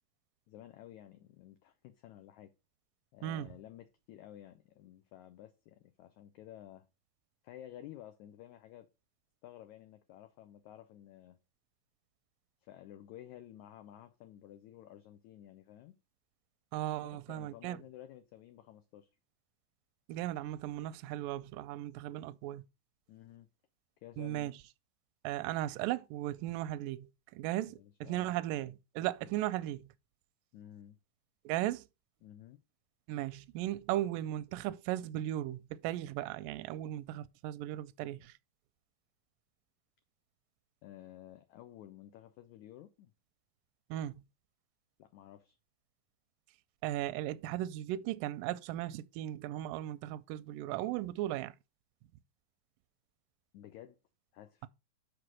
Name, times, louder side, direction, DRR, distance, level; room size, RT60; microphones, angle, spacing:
voice 1, 0.5-2.5 3.1-6.9 7.4-8.9 9.4-11.4 12.6-15.9 17.0-19.1 23.1-23.5 24.0-24.5 27.6-28.3 29.2-29.4 30.5-31.0 32.2-32.6 40.8-43.1 45.0-45.6 53.5-54.0 54.3-54.7, left 12 dB, 85° left, 1.7 m, -53 dB
voice 2, 16.7-17.8 20.1-22.6 24.2-24.6 25.2-29.9 31.5-31.9 33.1-38.3 43.9-44.2 46.8-51.5, right 14 dB, 80° right, 2.0 m, -36 dB
5.9 x 5.0 x 6.1 m
omnidirectional pair, 4.1 m